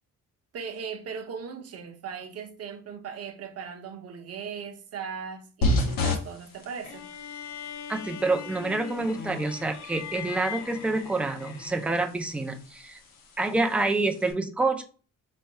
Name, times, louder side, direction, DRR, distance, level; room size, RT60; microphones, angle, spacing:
voice 1, 0.5-7.1, right 6 dB, 50° right, 0.7 m, -38 dB
sound 1, 5.6-14.3, left 1 dB, 85° left, 1.1 m, -34 dB
sound 2, 6.8-12.1, left 8 dB, 60° left, 0.6 m, -40 dB
voice 2, 7.9-13.0 13.4-14.8, right 2 dB, 5° right, 0.3 m, -27 dB
4.1 x 2.2 x 4.5 m
cardioid pair, 175°, 33 cm